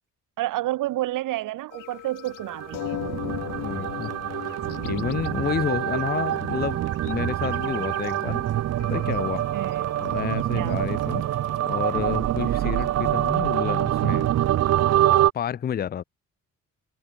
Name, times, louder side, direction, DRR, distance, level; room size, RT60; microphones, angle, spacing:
voice 1, 0.4-3.0 9.5-10.0 10.5-10.8, right 16 dB, 80° right, 1.7 m, -30 dB
sound 1, 1.7-13.3, left 14 dB, 75° left, 3.8 m, -40 dB
sound 2, 2.4-15.3, right 12 dB, 55° right, 0.8 m, -25 dB
voice 2, 3.6-6.8 7.0-8.5 8.9-9.5 10.0-11.3 11.7-14.3 15.3-16.0, left 9 dB, 30° left, 0.6 m, -30 dB
cardioid pair, 120°, 31 cm